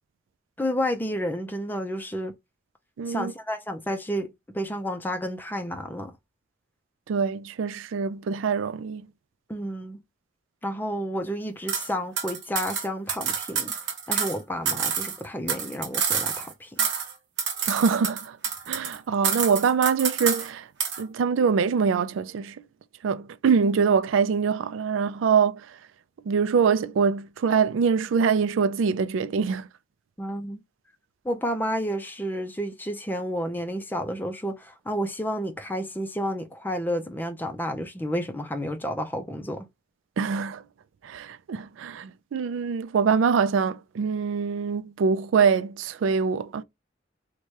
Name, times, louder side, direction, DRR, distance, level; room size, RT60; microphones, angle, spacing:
voice 1, 0.6-2.3 3.1-6.1 9.5-10.0 10.6-13.7 14.1-16.9 30.2-30.6 31.2-39.7, equal, 10° left, 0.4 m, -31 dB
voice 2, 3.0-3.3 7.1-9.1 17.7-18.4 18.7-20.7 21.0-22.6 23.0-25.8 26.3-29.7 40.2-40.6 41.0-46.6, right 6 dB, 85° right, 0.3 m, -24 dB
sound 1, 11.7-11.9 12.2-14.4 14.6-16.5 16.8-17.1 17.4-19.0 19.2-20.5 20.8-21.0, right 7 dB, 60° right, 0.9 m, -28 dB
4.6 x 2.2 x 2.8 m
head